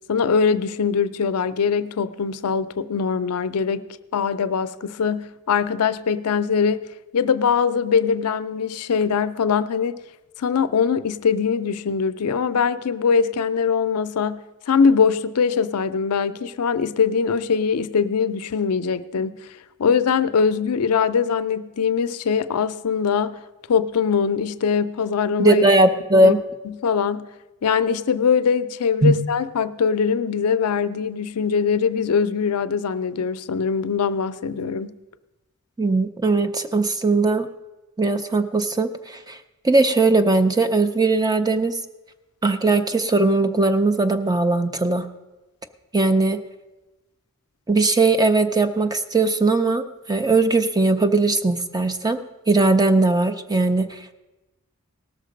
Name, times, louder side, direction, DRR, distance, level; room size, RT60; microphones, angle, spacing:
voice 1, 0.1-3.8 4.1-6.9 7.1-10.0 10.4-19.4 19.8-23.4 23.7-25.6 26.2-26.3 26.7-27.3 27.6-34.9, left 6 dB, 80° left, 0.5 m, -22 dB
voice 2, 25.4-26.4 29.0-29.2 35.8-37.5 38.0-39.4 39.6-41.8 42.4-45.1 45.9-46.4 47.7-52.2 52.5-54.1, right 2 dB, 15° right, 0.6 m, -19 dB
18.0 x 6.5 x 5.1 m
head